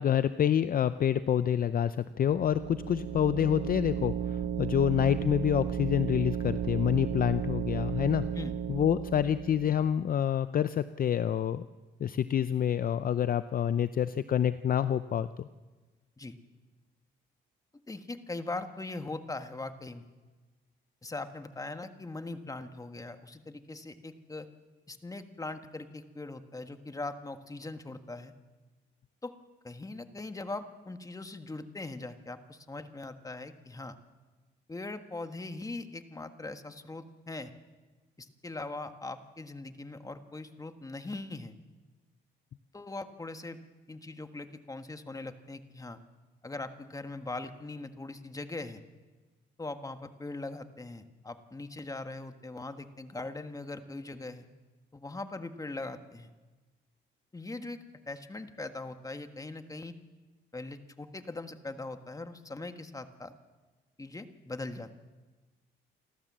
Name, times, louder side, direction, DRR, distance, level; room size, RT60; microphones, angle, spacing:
voice 1, 0.0-8.3 8.7-11.6 12.0-15.5, left 9 dB, 45° left, 13 dB, 0.6 m, -27 dB
sound 1, 2.2-9.9, right 9 dB, 60° right, 1.2 m, -34 dB
voice 2, 17.9-20.1 21.0-24.5 24.9-28.3 29.2-29.3 29.6-34.0 34.7-37.5 38.2-41.5 42.7-43.6 43.9-46.0 46.4-48.8 49.6-54.5 54.9-56.3 57.3-59.9 60.5-63.3 64.0-64.9, left 2 dB, 15° left, 8 dB, 1.5 m, -41 dB
29.0 x 12.5 x 7.4 m, 1.3 s
cardioid pair, 90°, 20 cm